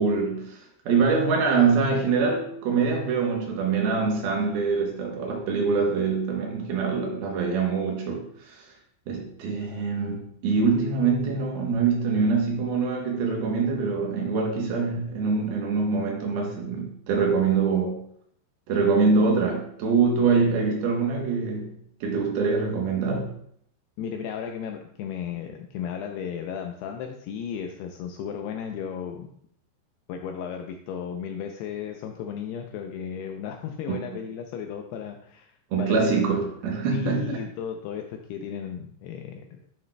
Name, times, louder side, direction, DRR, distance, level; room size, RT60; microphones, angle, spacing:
voice 1, 0.0-8.7 9.1-18.0 18.7-23.3 33.9-34.0 35.7-37.4, right 4 dB, 70° right, 1 dB, 2.5 m, -24 dB
voice 2, 24.0-29.3 30.1-35.5 35.8-36.2 36.9-39.6, left 7 dB, 85° left, 4 dB, 2.3 m, -34 dB
12.0 x 6.5 x 2.2 m, 0.67 s
omnidirectional pair, 5.2 m